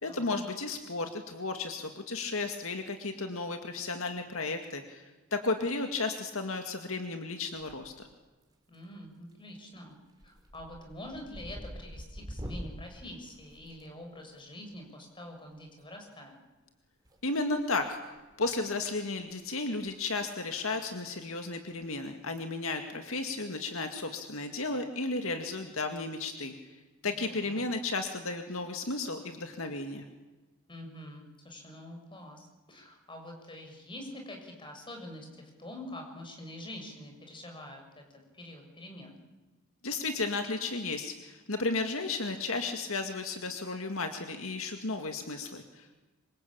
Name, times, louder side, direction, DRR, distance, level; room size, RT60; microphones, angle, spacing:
voice 1, 0.0-8.1 17.2-18.0 18.4-30.1 39.8-45.9, left 3 dB, 65° left, 5 dB, 2.2 m, -34 dB
sound 1, 7.5-8.1 8.4-8.9 9.3-9.6 9.9-14.3 15.7-15.8 17.0-17.8 18.1-18.3 18.9-19.0 19.2-19.3 19.7-19.9 20.2-20.3 21.8-22.1, equal, 20° right, 4.1 m, -45 dB
voice 2, 8.7-10.0 10.2-16.3 27.0-27.6 30.7-38.0 38.3-39.2, left 1 dB, 25° left, 3 dB, 6.5 m, -46 dB
26.5 x 25.5 x 8.8 m, 1.2 s
head